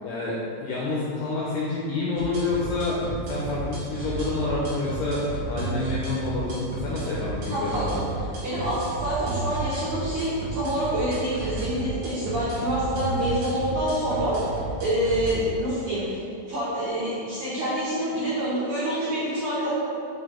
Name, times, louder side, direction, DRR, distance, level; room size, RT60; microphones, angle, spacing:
voice 1, 0.0-8.0, left 2 dB, 85° left, -6 dB, 2.3 m, -28 dB
sound 1, 2.2-15.3, right 3 dB, 60° right, 2.4 m, -33 dB
voice 2, 7.5-7.9 8.4-19.7, right 1 dB, 75° right, -11 dB, 1.7 m, -27 dB
7.2 x 4.2 x 3.8 m, 2.5 s
omnidirectional pair, 5.7 m